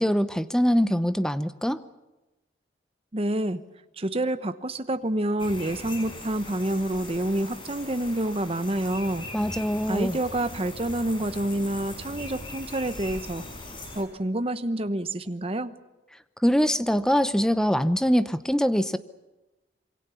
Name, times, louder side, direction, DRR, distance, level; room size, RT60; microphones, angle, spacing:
voice 1, 0.0-1.8 9.3-10.2 16.4-19.0, equal, 5° left, 12 dB, 0.8 m, -23 dB
voice 2, 3.1-3.6 4.0-9.3 9.9-13.4 13.9-15.7, right 1 dB, 30° right, 11 dB, 1.0 m, -28 dB
sound 1, 5.4-14.0, left 1 dB, 30° left, 5.7 m, -40 dB
26.5 x 23.5 x 7.1 m, 1.0 s
head